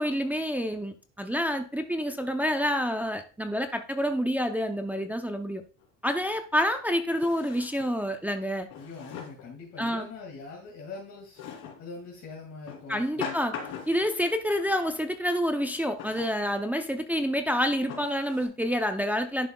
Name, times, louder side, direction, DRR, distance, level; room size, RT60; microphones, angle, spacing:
voice 1, 0.0-5.6 6.0-8.7 9.8-10.1 12.9-13.5 13.9-19.5, equal, 5° right, 5 dB, 0.5 m, -28 dB
Drawer open or close, 5.8-5.9 7.1-8.0 8.7-9.5 11.4-11.8 12.7-14.1 16.0-16.4 17.1-17.2 17.9-18.5, left 7 dB, 70° left, 2.9 m, -40 dB
voice 2, 8.8-11.4 11.8-13.3, left 4 dB, 50° left, -1 dB, 2.2 m, -42 dB
11.0 x 5.5 x 2.3 m, 0.36 s
cardioid pair, 145°, 36 cm